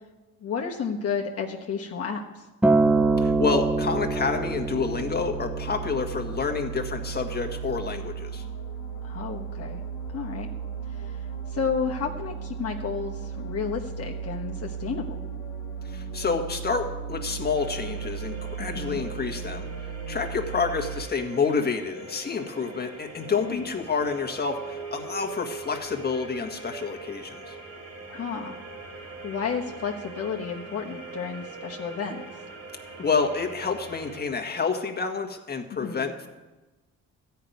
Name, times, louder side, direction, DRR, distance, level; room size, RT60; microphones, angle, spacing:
voice 1, 0.4-2.4 9.0-9.8 10.1-10.5 10.9-15.2 18.6-19.0 23.4-23.6 28.1-28.6 29.0-32.2 35.7-36.1, left 6 dB, 50° left, 0 dB, 1.3 m, -32 dB
Acoustic guitar, 2.6-6.9 7.8-7.9, right 3 dB, 5° right, 0.6 m, -25 dB
sound 1, 2.7-21.0, right 6 dB, 90° left, 1.2 m, -35 dB
voice 2, 3.2-8.4 15.8-19.7 20.1-27.5 33.0-36.3, left 5 dB, 30° left, 4 dB, 1.7 m, -28 dB
sound 2, 17.5-34.2, right 3 dB, 55° right, 2.9 m, -42 dB
13.5 x 5.8 x 9.3 m, 1.2 s
cardioid pair, 90°, 30 cm